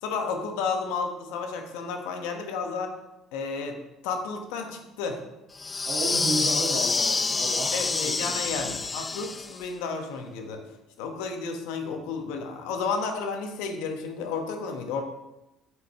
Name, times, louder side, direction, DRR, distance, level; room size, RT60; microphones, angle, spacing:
voice 1, 0.0-2.9 3.3-3.8 4.0-5.2 7.7-10.6 11.0-15.0, left 5 dB, 90° left, 4 dB, 1.2 m, -32 dB
sound 1, 5.6-9.6, left 4 dB, 25° left, 0.3 m, -27 dB
voice 2, 5.8-8.5, right 2 dB, 60° right, -5 dB, 1.6 m, -33 dB
8.2 x 5.0 x 4.2 m, 0.96 s
cardioid pair, 110°, 0 cm